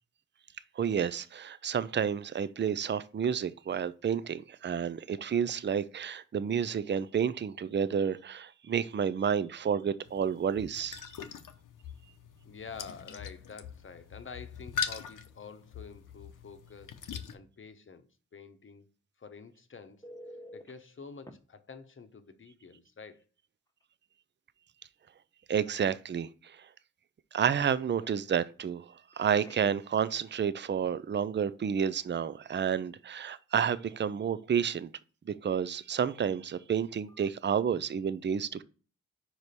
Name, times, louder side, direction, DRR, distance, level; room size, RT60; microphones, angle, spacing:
voice 1, 0.8-11.0 25.5-26.6 27.3-34.9 35.3-38.6, right 7 dB, 35° right, 0.5 m, -30 dB
sound 1, 10.1-17.3, left 7 dB, 80° left, 0.7 m, -41 dB
voice 2, 12.4-17.0 17.3-18.9 19.2-20.0 20.5-23.2, left 5 dB, 40° left, 0.9 m, -48 dB
Telephone, 20.0-20.7 21.3-21.4 23.1-23.3 23.7-23.8 29.1-30.0 37.1-37.3, equal, 10° left, 0.9 m, -49 dB
5.0 x 4.6 x 4.2 m
cardioid pair, 60°, 31 cm